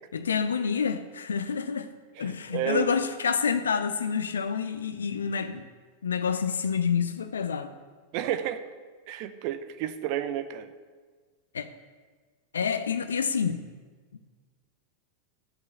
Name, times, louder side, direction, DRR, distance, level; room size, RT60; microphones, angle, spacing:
voice 1, 0.1-1.9 2.2-5.7 6.0-7.7 11.5-11.7 12.5-13.6, left 6 dB, 70° left, 11 dB, 0.7 m, -28 dB
voice 2, 2.2-2.9 8.1-8.6 9.1-10.7, right 11 dB, 45° right, 10 dB, 0.8 m, -31 dB
13.5 x 6.4 x 6.9 m, 1.5 s
figure-of-eight pair, 90°, 0 cm